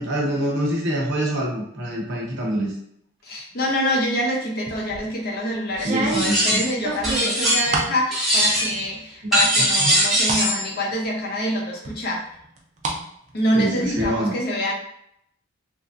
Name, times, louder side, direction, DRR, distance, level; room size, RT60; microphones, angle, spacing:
voice 1, 0.0-2.7 5.8-6.6 9.8-9.9 13.5-14.3, right 1 dB, 50° right, -3 dB, 0.8 m, -25 dB
voice 2, 3.2-12.2 13.3-14.7, equal, 45° left, -1 dB, 0.6 m, -26 dB
sound 1, 4.7-5.1 5.7-8.0 8.4-9.0 9.3-10.5 10.9-11.0 11.8-13.0 13.3-14.1, right 2 dB, 35° right, 0.4 m, -29 dB
sound 2, 6.1-6.7 7.0-7.8 8.1-8.8 9.3-10.6, equal, ahead, 0.9 m, -21 dB
3.1 x 2.6 x 2.4 m, 0.73 s
head